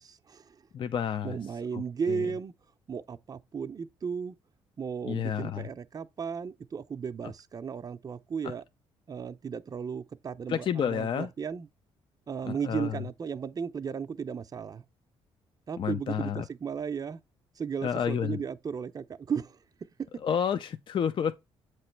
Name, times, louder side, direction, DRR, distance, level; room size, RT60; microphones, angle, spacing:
voice 1, 0.0-0.6 1.2-2.5 2.9-4.3 4.8-8.6 9.1-11.7 12.3-14.8 15.7-17.2 17.6-19.6, right 6 dB, 35° right, 0.5 m, -35 dB
voice 2, 0.7-1.4 1.7-1.8 2.1-2.2 5.0-5.7 8.4-8.5 10.5-11.3 12.4-13.0 15.8-16.4 17.8-18.4 20.2-21.3, left 8 dB, 45° left, 0.5 m, -30 dB
7.7 x 3.0 x 4.5 m
cardioid pair, 90°, 11 cm